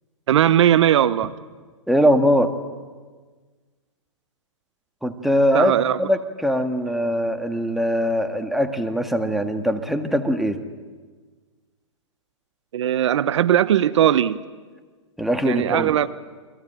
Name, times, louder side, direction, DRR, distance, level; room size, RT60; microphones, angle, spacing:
voice 1, 0.3-1.3 5.5-6.0 12.7-14.4 15.4-16.1, right 11 dB, 65° right, 0.9 m, -18 dB
voice 2, 1.9-2.5 5.0-5.7 6.0-10.6 15.2-16.0, equal, ahead, 1.7 m, -21 dB
29.5 x 22.5 x 9.0 m
hypercardioid pair, 130°, 16 cm